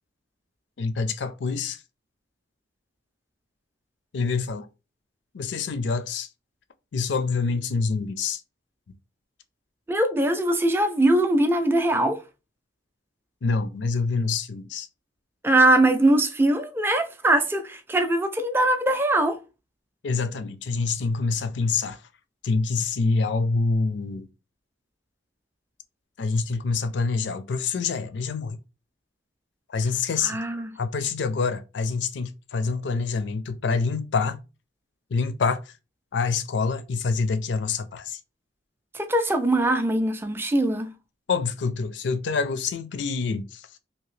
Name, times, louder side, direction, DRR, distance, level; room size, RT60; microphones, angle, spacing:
voice 1, 0.8-1.8 4.1-4.6 5.3-6.3 6.9-8.4 13.4-14.9 20.0-22.0 22.4-24.2 26.2-28.6 29.7-30.4 30.8-34.4 35.1-35.6 36.1-38.2 41.3-43.6, left 4 dB, 75° left, 0.4 m, -26 dB
voice 2, 9.9-12.2 15.4-19.4 30.2-30.7 38.9-40.9, right 1 dB, 10° right, 0.4 m, -21 dB
2.9 x 2.7 x 3.1 m
head